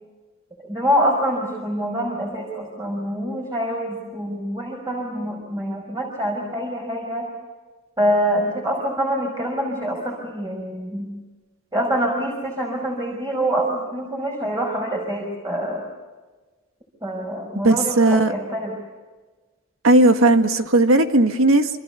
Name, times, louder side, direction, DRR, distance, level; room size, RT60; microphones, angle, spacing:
voice 1, 0.6-7.3 8.0-11.1 11.7-15.8 17.0-18.7, equal, 20° right, 0 dB, 5.7 m, -25 dB
voice 2, 17.6-18.3 19.8-21.7, right 2 dB, 75° right, 7 dB, 1.9 m, -16 dB
28.5 x 26.5 x 7.0 m, 1.3 s
head